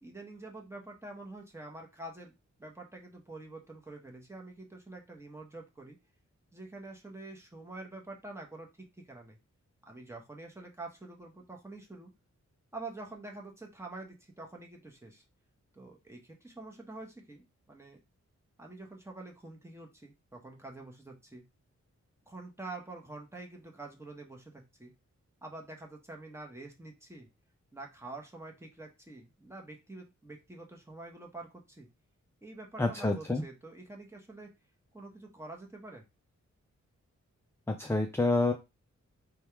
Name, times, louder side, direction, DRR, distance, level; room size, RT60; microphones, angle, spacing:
voice 1, 0.0-6.0 6.5-9.4 9.9-12.1 12.7-15.2 15.7-18.0 18.6-21.4 22.3-24.9 25.4-27.3 27.7-31.9 32.4-34.5 34.9-36.0, right 2 dB, 10° right, 0 dB, 1.0 m, -47 dB
voice 2, 32.8-33.4 37.7-38.5, left 2 dB, 10° left, 4 dB, 0.4 m, -28 dB
3.5 x 2.3 x 4.4 m, 0.24 s
wide cardioid pair, 115°, 29 cm